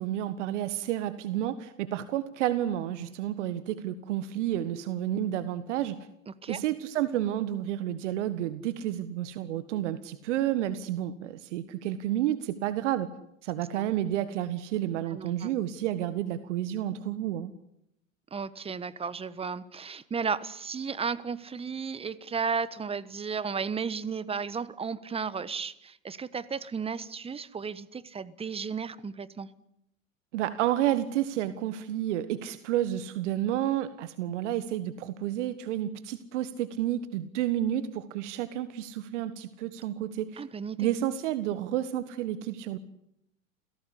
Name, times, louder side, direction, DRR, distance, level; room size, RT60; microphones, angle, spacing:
voice 1, 0.0-6.0 6.5-13.1 13.4-17.5 30.3-40.4 40.8-42.8, right 12 dB, 60° right, 13 dB, 1.6 m, -30 dB
voice 2, 6.3-6.6 13.7-13.8 15.1-15.5 18.3-29.5 40.4-40.9, right 5 dB, 15° right, 18 dB, 1.3 m, -34 dB
29.0 x 17.5 x 8.5 m, 0.79 s
hypercardioid pair, 95°, 40 cm